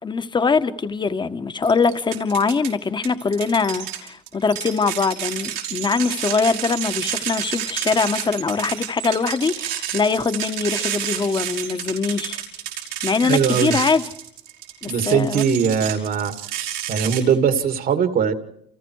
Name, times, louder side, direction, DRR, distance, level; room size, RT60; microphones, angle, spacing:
voice 1, 0.0-12.4 13.0-14.0 14.8-15.5, left 4 dB, 25° left, 1.5 m, -22 dB
sound 1, 1.6-2.7 3.0-17.2, right 11 dB, 90° right, 5.4 m, -30 dB
voice 2, 13.2-13.8 14.9-16.3 16.9-18.3, right 7 dB, 60° right, 2.5 m, -20 dB
29.5 x 29.0 x 4.8 m
cardioid pair, 110°, 17 cm